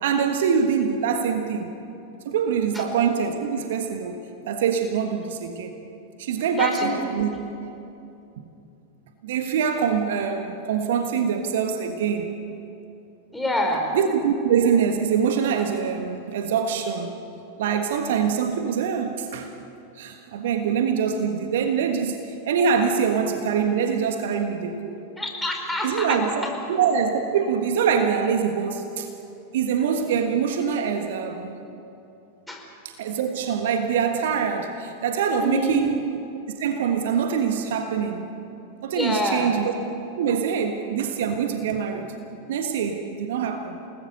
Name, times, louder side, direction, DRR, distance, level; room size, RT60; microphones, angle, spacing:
voice 1, 0.0-1.7 2.2-5.8 6.2-7.3 9.2-12.3 13.9-17.1 17.6-19.5 19.9-25.0 25.8-29.1 29.5-31.6 32.8-36.1 36.6-38.2 38.8-39.7 40.2-42.1 42.5-43.8, right 7 dB, 55° right, 6 dB, 1.5 m, -24 dB
voice 2, 6.6-6.9 13.3-13.8 25.2-26.2 32.5-32.6 35.4-35.7 38.9-39.5, left 1 dB, 5° left, 1 dB, 4.6 m, -26 dB
29.0 x 19.5 x 6.7 m, 2.7 s
figure-of-eight pair, 90°, 0 cm